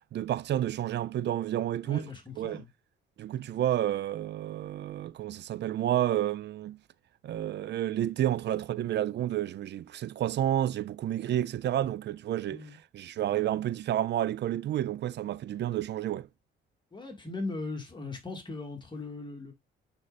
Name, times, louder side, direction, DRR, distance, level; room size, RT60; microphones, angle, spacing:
voice 1, 0.1-2.1 2.4-2.6 3.2-6.8 7.2-12.7 12.9-16.3, right 12 dB, 60° right, 0.5 m, -30 dB
voice 2, 1.8-2.7 12.5-12.8 16.9-19.5, left 3 dB, 25° left, 2.3 m, -39 dB
9.5 x 4.5 x 2.5 m
cardioid pair, 90°, 20 cm